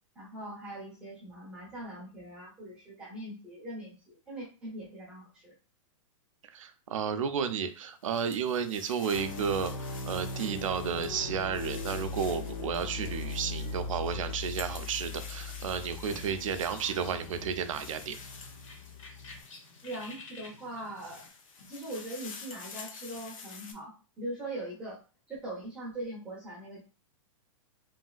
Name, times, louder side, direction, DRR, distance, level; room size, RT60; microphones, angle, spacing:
voice 1, 0.2-5.5 19.8-21.3 21.7-25.0 25.3-26.8, right 1 dB, 5° right, -6 dB, 0.7 m, -41 dB
voice 2, 6.5-18.2, right 7 dB, 75° right, 9 dB, 0.5 m, -32 dB
sound 1, 7.5-20.3 20.8-23.7, left 5 dB, 90° left, 0.8 m, -49 dB
sound 2, 9.1-19.4, left 3 dB, 55° left, 0.8 m, -39 dB
sound 3, 12.9-21.3, left 3 dB, 70° left, 1.1 m, -53 dB
3.1 x 2.7 x 2.3 m, 0.34 s
supercardioid pair, 180°, 17 cm